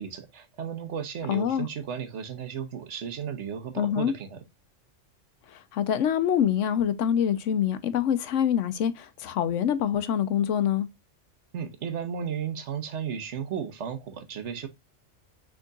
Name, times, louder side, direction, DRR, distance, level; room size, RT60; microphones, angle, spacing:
voice 1, 0.0-4.4 11.5-14.7, right 7 dB, 70° right, 1.2 m, -34 dB
voice 2, 1.3-1.7 3.8-4.1 5.5-10.9, left 9 dB, 80° left, 1.0 m, -25 dB
6.4 x 3.7 x 2.2 m
omnidirectional pair, 1.3 m